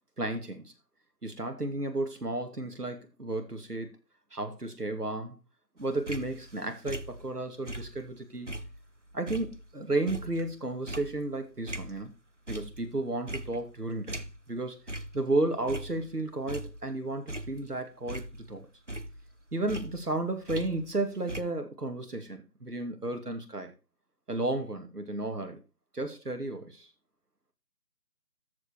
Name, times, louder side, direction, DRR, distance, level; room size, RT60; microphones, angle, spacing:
voice 1, 0.2-0.7 1.2-3.9 4.3-5.4 5.8-8.6 9.1-12.1 12.5-14.8 15.1-18.6 19.5-23.7 24.3-25.6 25.9-26.9, right 2 dB, 65° right, 5 dB, 2.6 m, -33 dB
sound 1, 5.8-8.2 8.5-12.1 12.5-12.9 13.3-14.6 14.9-15.2 15.6-16.9 17.3-18.6 18.9-21.0 21.3-21.4, right 1 dB, 45° right, 0.7 m, -41 dB
13.5 x 5.2 x 4.5 m, 0.29 s
figure-of-eight pair, 175°, 50 cm